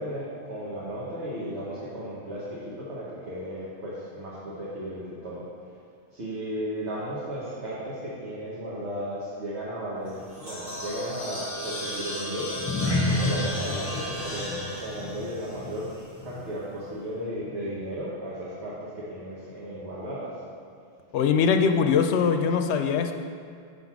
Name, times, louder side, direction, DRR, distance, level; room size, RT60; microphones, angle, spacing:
voice 1, 0.0-5.5 6.1-12.6 13.0-15.9 16.2-20.4, equal, 70° right, -8 dB, 1.5 m, -35 dB
sound 1, 10.1-16.3, left 1 dB, 85° right, 2.2 m, -36 dB
sound 2, 12.5-17.1 17.4-17.7 18.2-18.3, left 2 dB, 10° left, 1.2 m, -31 dB
voice 2, 21.1-23.1, left 6 dB, 75° left, 6 dB, 0.8 m, -22 dB
7.5 x 3.9 x 5.9 m, 2.3 s
omnidirectional pair, 1.2 m